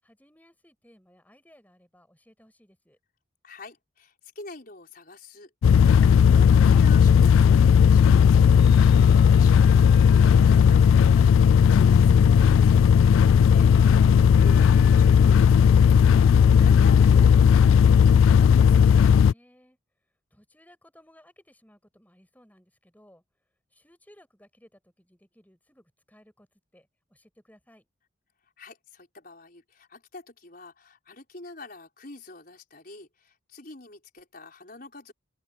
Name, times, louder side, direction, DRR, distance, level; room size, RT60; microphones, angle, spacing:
voice 1, 0.0-3.0 19.1-19.8 20.3-23.2 23.7-26.5 26.7-27.9, equal, 10° left, 7.2 m, -58 dB
voice 2, 3.4-5.5 5.8-8.7 9.0-12.8 13.0-18.7 28.6-35.1, left 2 dB, 45° left, 5.2 m, -45 dB
sound 1, 5.6-19.3, left 7 dB, 85° left, 0.3 m, -16 dB
Guitar, 8.1-18.7, left 3 dB, 65° left, 5.9 m, -47 dB
open air
head